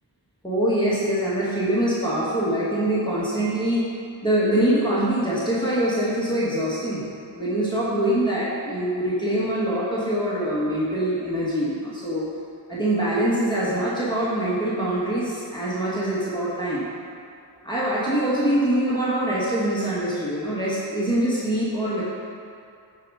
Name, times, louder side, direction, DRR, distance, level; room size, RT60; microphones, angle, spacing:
voice 1, 0.4-3.9 4.2-7.0 7.3-12.2 12.7-16.8 17.6-22.0, right 1 dB, 10° left, -9 dB, 1.8 m, -24 dB
9.1 x 5.0 x 4.9 m, 2.4 s
wide cardioid pair, 45°, 46 cm